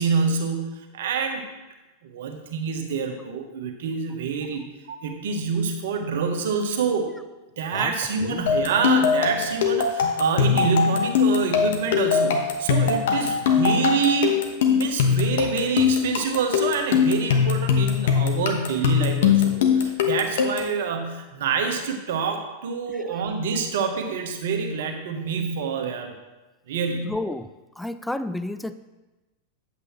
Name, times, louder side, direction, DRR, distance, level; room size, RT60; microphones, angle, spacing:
voice 1, 0.0-1.5 2.0-7.1 7.6-26.1 26.7-27.2, right 5 dB, 55° right, 4 dB, 1.2 m, -26 dB
sound 1, 8.5-20.8, left 7 dB, 55° left, 1.1 m, -22 dB
voice 2, 27.0-27.5 27.8-28.7, left 1 dB, 5° left, 12 dB, 0.3 m, -31 dB
9.3 x 8.2 x 3.1 m, 1.1 s
figure-of-eight pair, 90°, 0 cm